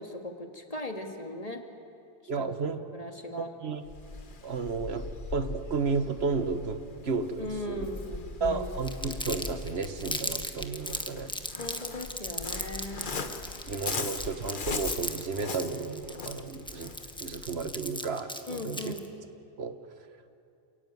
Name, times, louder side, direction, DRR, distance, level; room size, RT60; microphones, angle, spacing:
voice 1, 0.0-1.7 2.4-2.5 2.9-3.5 7.4-8.7 11.6-13.2 18.5-19.1, left 1 dB, 35° left, 4 dB, 2.0 m, -38 dB
voice 2, 2.3-2.8 3.4-3.8 4.4-5.1 5.3-7.9 8.4-11.3 13.7-16.9 17.2-18.9 19.6-19.8, right 4 dB, 75° right, 9 dB, 1.5 m, -32 dB
Waves surf, 3.8-17.7, left 4 dB, 50° left, 1.3 m, -40 dB
Crumpling crinkling, 8.8-19.1, equal, 5° left, 1.2 m, -37 dB
28.0 x 16.5 x 9.4 m, 2.5 s
omnidirectional pair, 1.1 m